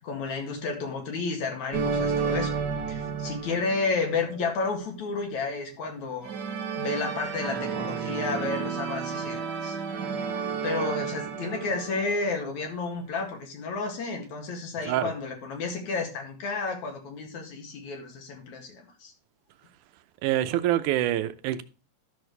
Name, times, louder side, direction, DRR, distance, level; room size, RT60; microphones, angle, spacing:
voice 1, 0.0-2.5 2.9-6.3 6.7-9.8 10.6-19.1, left 4 dB, 70° left, 3.3 m, -31 dB
sound 1, 1.7-4.4 6.2-12.5, right 6 dB, 55° right, 1.2 m, -31 dB
voice 2, 20.2-21.6, right 13 dB, 85° right, 2.2 m, -25 dB
13.0 x 6.3 x 3.3 m
omnidirectional pair, 3.5 m